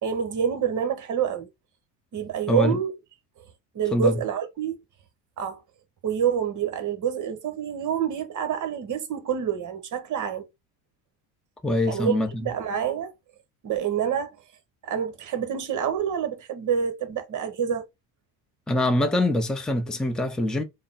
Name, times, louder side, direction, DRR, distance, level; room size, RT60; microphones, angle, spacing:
voice 1, 0.0-1.5 2.1-2.9 3.7-4.8 5.4-5.6 6.0-10.5 11.9-13.1 13.6-14.4 14.8-17.9, right 8 dB, 45° right, 1.2 m, -27 dB
voice 2, 2.5-2.8 3.9-4.2 11.6-12.5 18.7-20.6, left 1 dB, ahead, 0.6 m, -24 dB
3.7 x 2.1 x 4.0 m
cardioid pair, 105°, 41 cm